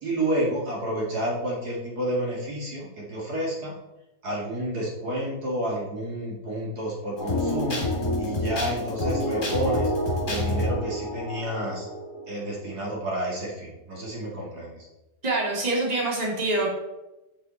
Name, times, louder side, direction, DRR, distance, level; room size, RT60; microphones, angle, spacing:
voice 1, 0.0-3.7 4.2-7.8 8.2-9.9 10.2-11.9 12.3-14.9, right 1 dB, 65° right, -3 dB, 2.5 m, -30 dB
sound 1, 7.2-12.7, left 1 dB, 30° left, 2.1 m, -28 dB
voice 2, 15.2-16.7, right 2 dB, 25° right, -4 dB, 2.2 m, -25 dB
8.0 x 7.5 x 4.1 m, 0.97 s
omnidirectional pair, 1.8 m